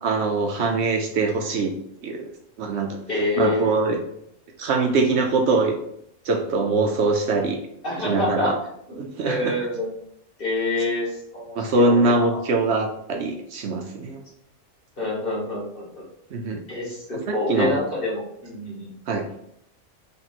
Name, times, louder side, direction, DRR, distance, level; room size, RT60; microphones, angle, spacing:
voice 1, 0.0-1.7 2.0-2.3 2.6-3.0 3.3-4.0 4.6-5.7 6.2-7.6 8.0-8.5 9.0-9.7 11.6-14.2 16.3-16.6 17.3-17.7 19.1-19.2, right 3 dB, 65° right, 3 dB, 0.8 m, -23 dB
voice 2, 3.1-4.0 7.8-8.5 9.2-9.9 10.4-12.4 15.0-16.0 16.7-18.9, left 2 dB, 45° left, -5 dB, 1.6 m, -27 dB
3.5 x 2.9 x 4.1 m, 0.73 s
omnidirectional pair, 1.3 m